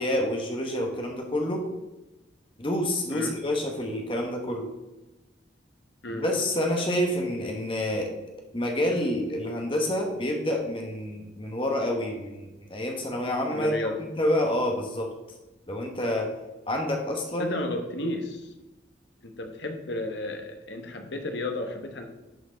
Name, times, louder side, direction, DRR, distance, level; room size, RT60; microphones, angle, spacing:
voice 1, 0.0-1.6 2.6-4.7 6.1-8.1 8.5-13.7 14.2-15.1 15.7-16.3 16.7-17.6, left 1 dB, 30° left, 1 dB, 1.1 m, -28 dB
voice 2, 13.5-14.0 17.4-18.5 19.2-22.1, left 2 dB, 70° left, 5 dB, 1.0 m, -33 dB
11.0 x 4.5 x 3.8 m, 1.0 s
head